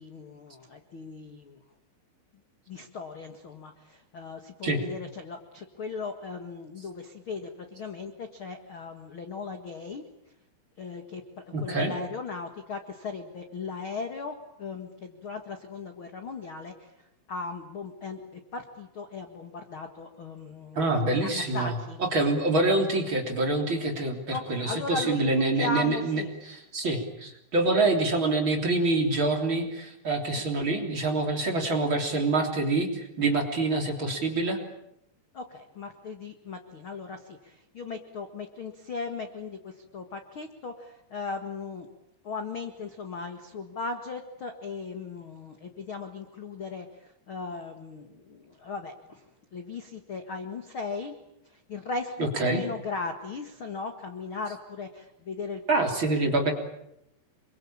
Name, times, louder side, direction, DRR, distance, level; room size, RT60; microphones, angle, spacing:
voice 1, 0.0-1.6 2.7-10.0 10.8-16.9 17.3-22.0 24.3-26.3 30.3-30.5 35.3-41.9 42.2-51.2 51.4-52.2 52.4-55.6, left 4 dB, 50° left, 6 dB, 1.6 m, -37 dB
voice 2, 11.5-11.9 20.7-21.7 22.1-26.2 26.5-34.6 52.2-52.6 55.7-56.5, right 2 dB, 30° right, 3 dB, 3.6 m, -26 dB
27.5 x 24.0 x 8.8 m, 0.82 s
omnidirectional pair, 5.1 m